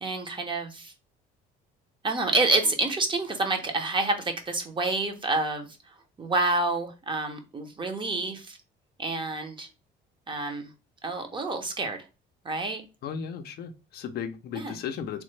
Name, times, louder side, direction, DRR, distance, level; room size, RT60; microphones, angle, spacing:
voice 1, 0.0-0.9 2.0-8.6 9.0-9.7 10.3-10.7 11.0-12.0 12.4-12.8 14.5-14.7, right 2 dB, 25° right, 0.7 m, -28 dB
voice 2, 13.0-15.2, left 7 dB, 55° left, 0.4 m, -35 dB
3.2 x 2.1 x 3.1 m
cardioid pair, 105°, 19 cm